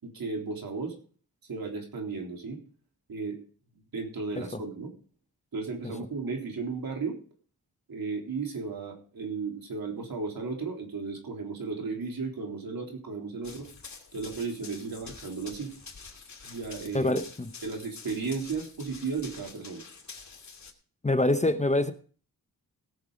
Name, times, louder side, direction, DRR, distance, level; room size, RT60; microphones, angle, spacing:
voice 1, 0.0-1.0 1.5-2.6 3.1-3.4 3.9-4.9 5.5-7.2 7.9-13.7 14.1-15.7 16.4-17.1 17.6-19.8, right 4 dB, 65° right, 1 dB, 3.8 m, -34 dB
Run, 13.4-20.7, left 5 dB, 45° left, 2.6 m, -47 dB
voice 2, 16.9-17.5 21.0-21.9, left 2 dB, 20° left, 9 dB, 0.9 m, -25 dB
18.0 x 6.8 x 5.0 m, 0.42 s
cardioid pair, 80°, 38 cm